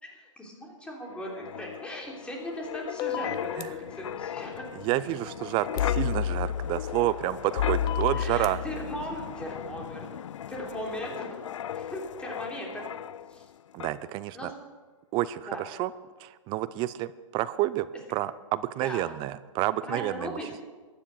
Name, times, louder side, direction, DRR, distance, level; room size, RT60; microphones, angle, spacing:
voice 1, 0.0-4.6 8.1-10.0 10.5-11.4 11.7-12.9 13.3-13.5 14.3-14.5 15.5-15.6 18.8-19.0 19.8-20.5, equal, 5° left, -1 dB, 3.3 m, -38 dB
Wind, 1.1-13.5 13.8-14.0, left 9 dB, 65° left, 0.4 m, -34 dB
sound 1, 3.0-3.6 5.8-5.9 7.9-8.5, left 10 dB, 25° left, 0.7 m, -33 dB
voice 2, 4.8-8.6 13.7-14.5 15.1-15.9 16.2-20.3, right 15 dB, 30° right, 16 dB, 0.5 m, -29 dB
14.5 x 10.0 x 6.7 m, 1.4 s
figure-of-eight pair, 115°, 17 cm